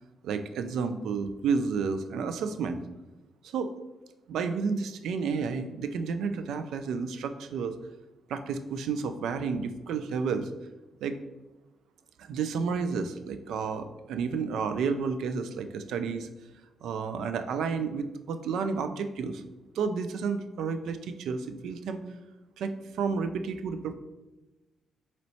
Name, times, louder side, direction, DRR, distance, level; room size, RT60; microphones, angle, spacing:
voice 1, 0.2-2.8 3.4-3.7 4.3-7.7 8.3-10.5 11.0-11.2 12.2-16.3 16.8-19.4 19.7-22.0 22.6-23.9, right 5 dB, 70° right, 9 dB, 0.4 m, -31 dB
4.2 x 4.0 x 3.0 m, 1.1 s
hypercardioid pair, 40°, 0 cm